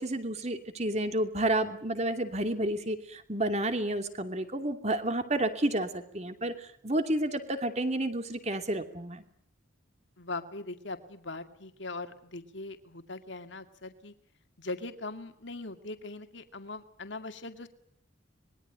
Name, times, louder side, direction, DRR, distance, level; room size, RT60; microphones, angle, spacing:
voice 1, 0.0-9.2, right 1 dB, 35° right, 8 dB, 2.7 m, -30 dB
voice 2, 10.2-14.1 14.6-17.7, left 2 dB, 65° left, 8 dB, 2.3 m, -40 dB
26.0 x 22.0 x 9.1 m, 0.65 s
head